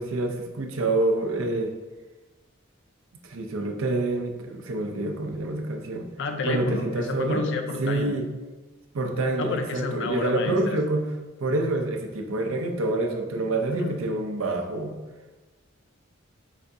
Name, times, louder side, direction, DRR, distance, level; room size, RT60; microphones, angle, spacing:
voice 1, 0.0-1.7 3.2-6.1 6.4-7.4 7.8-8.3 8.9-11.1 11.4-15.0, right 2 dB, 90° right, 4 dB, 0.6 m, -27 dB
voice 2, 6.2-8.2 9.4-10.8 13.8-14.0, left 3 dB, 60° left, 5 dB, 0.5 m, -30 dB
4.9 x 3.4 x 2.7 m, 1.2 s
head